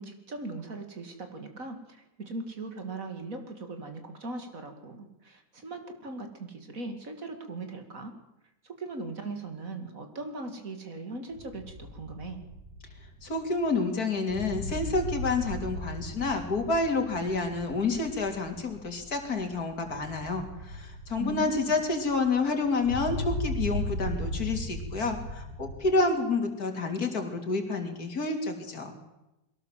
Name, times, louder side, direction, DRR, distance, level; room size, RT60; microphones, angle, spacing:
voice 1, 0.0-8.1 8.6-12.4 21.2-21.8, right 2 dB, 50° right, 6 dB, 2.8 m, -39 dB
sound 1, 11.3-25.8, left 1 dB, 80° right, 5.1 m, -38 dB
voice 2, 13.2-29.0, left 3 dB, 60° left, 4 dB, 3.4 m, -29 dB
22.5 x 18.0 x 7.5 m, 0.95 s
omnidirectional pair, 1.8 m